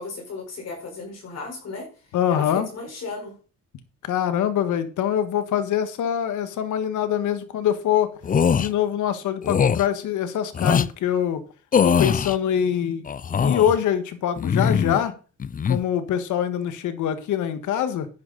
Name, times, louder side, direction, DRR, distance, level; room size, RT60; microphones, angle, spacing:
voice 1, 0.0-1.9 2.3-3.3, left 3 dB, 55° left, 1 dB, 4.6 m, -35 dB
voice 2, 2.1-2.7 4.0-8.1 8.5-11.4 11.8-13.1 13.4-15.1 15.6-18.1, left 9 dB, 80° left, 11 dB, 1.6 m, -24 dB
sound 1, 8.2-8.7 9.4-9.8 10.5-10.9 11.7-12.4 13.1-13.8 14.4-15.0 15.4-15.8, left 7 dB, 30° left, 0.5 m, -21 dB
10.5 x 9.5 x 4.1 m, 0.36 s
cardioid pair, 90°, 30 cm